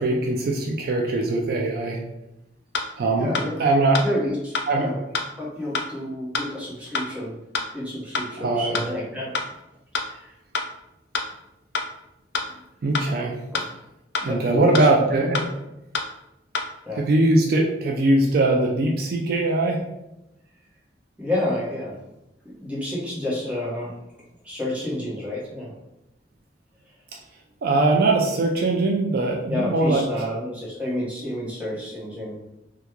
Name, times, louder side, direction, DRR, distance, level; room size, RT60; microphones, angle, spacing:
voice 1, 0.0-2.0 3.0-3.3 3.6-4.0 4.7-4.9 8.4-8.8 12.8-13.4 14.2-15.4 17.0-19.8 27.6-30.0, right 2 dB, 60° right, 1 dB, 0.4 m, -21 dB
sound 1, 2.7-2.8 3.3-3.5 3.9-4.0 4.5-4.7 5.1-5.2 5.7-5.9 6.3-6.4 6.9-7.1 7.5-7.6 8.1-8.3 8.7-8.8 9.3-9.5 9.9-10.1 10.5-10.7 11.1-11.2 11.7-11.9 12.3-12.4 12.9-13.1 13.5-13.6 14.1-14.3 14.7-14.8 15.3-15.5 15.9-16.0 16.5-16.7, left 4 dB, 70° left, 0.4 m, -25 dB
voice 2, 3.2-3.6 4.0-5.0 5.4-7.4 7.7-9.4 10.0-10.4 13.5-13.6 14.2-14.9 15.2-15.3 16.8-17.0 21.2-22.0 22.6-23.9 24.4-25.7 29.5-32.4, left 1 dB, 10° right, -6 dB, 1.0 m, -29 dB
2.9 x 2.2 x 3.5 m, 0.91 s
head